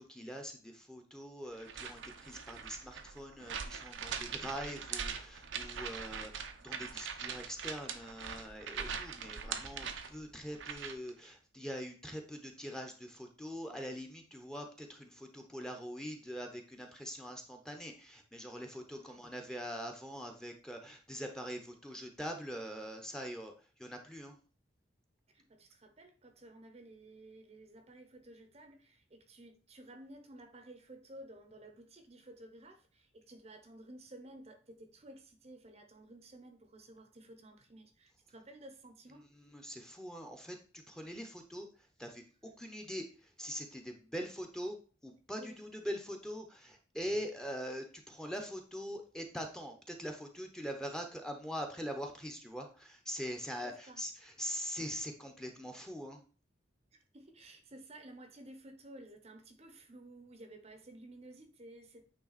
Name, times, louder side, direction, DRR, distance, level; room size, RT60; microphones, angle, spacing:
voice 1, 0.0-23.5 23.8-24.3 39.5-40.6 40.9-41.7 42.0-43.0 43.4-44.8 45.0-56.2, equal, 5° left, 3 dB, 0.9 m, -43 dB
sound 1, 1.6-11.1, right 6 dB, 85° right, 0.8 m, -42 dB
voice 2, 25.3-39.2 45.4-45.6 53.6-54.0 56.9-62.0, right 1 dB, 35° right, 7 dB, 0.8 m, -54 dB
8.8 x 3.4 x 4.1 m, 0.37 s
head